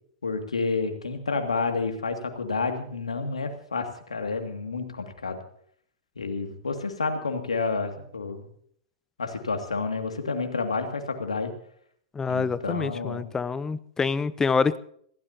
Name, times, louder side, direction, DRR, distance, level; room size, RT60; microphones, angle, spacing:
voice 1, 0.2-5.4 6.2-8.4 9.2-11.5 12.3-13.3, left 4 dB, 90° left, 5 dB, 2.2 m, -30 dB
voice 2, 12.1-14.8, left 5 dB, 15° left, 17 dB, 0.7 m, -26 dB
26.5 x 16.0 x 2.8 m, 0.64 s
hypercardioid pair, 105°, 3 cm